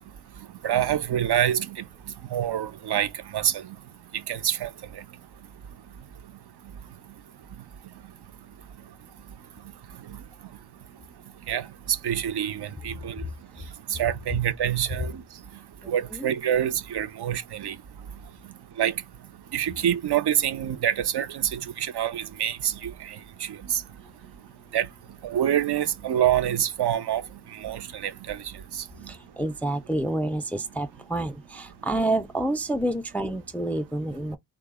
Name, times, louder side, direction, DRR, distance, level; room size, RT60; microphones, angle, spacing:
voice 1, 0.6-1.8 2.3-3.1 3.3-3.5 4.3-4.7 11.5-11.6 12.0-13.1 14.0-15.1 15.9-17.7 18.8-18.9 19.5-22.9 24.7-24.9 25.2-27.2 27.6-28.4, right 10 dB, 60° right, 0.5 m, -26 dB
voice 2, 29.1-34.4, right 1 dB, 5° left, 0.3 m, -28 dB
3.7 x 2.0 x 3.4 m
wide cardioid pair, 115°, 44 cm